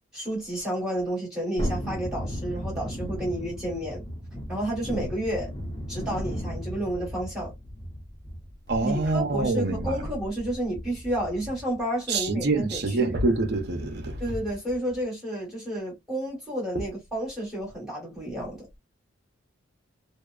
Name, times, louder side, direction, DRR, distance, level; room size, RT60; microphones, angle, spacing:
voice 1, 0.1-4.0 4.5-5.5 5.9-7.5 8.8-13.1 14.2-18.6, right 1 dB, 5° right, 1.3 m, -31 dB
Thunderstorm, 1.6-11.8 12.1-12.2, equal, 20° left, 0.8 m, -36 dB
voice 2, 8.7-10.1 12.1-14.2 16.7-16.8, right 3 dB, 55° right, 0.6 m, -26 dB
2.8 x 2.1 x 2.3 m
head